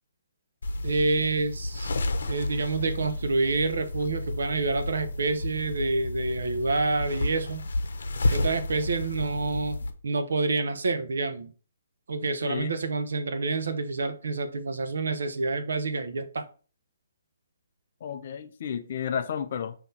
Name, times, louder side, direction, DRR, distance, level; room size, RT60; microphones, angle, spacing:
sound 1, 0.6-9.9, left 2 dB, 70° left, 0.9 m, -31 dB
voice 1, 0.8-1.9 2.3-7.7 8.3-11.5 12.1-16.4, right 3 dB, 75° right, 1.0 m, -28 dB
voice 2, 12.2-12.8 18.0-19.7, left 8 dB, 40° left, 0.6 m, -32 dB
5.7 x 3.0 x 5.5 m
hypercardioid pair, 175°, 0 cm